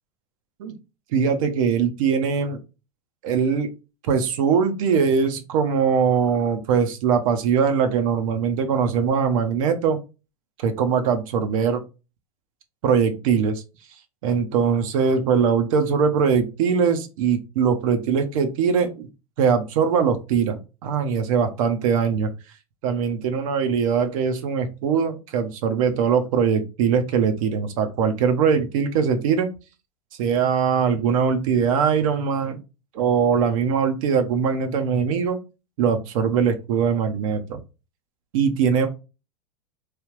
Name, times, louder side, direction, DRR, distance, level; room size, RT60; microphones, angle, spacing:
voice 1, 1.1-2.6 3.2-3.7 4.0-10.0 10.6-11.8 12.8-13.6 14.2-19.1 19.4-22.3 22.8-29.5 30.2-32.6 32.9-35.4 35.8-37.6 38.3-38.9, right 6 dB, 65° right, 7 dB, 0.7 m, -21 dB
3.2 x 2.4 x 3.1 m, 0.29 s
hypercardioid pair, 115°, 19 cm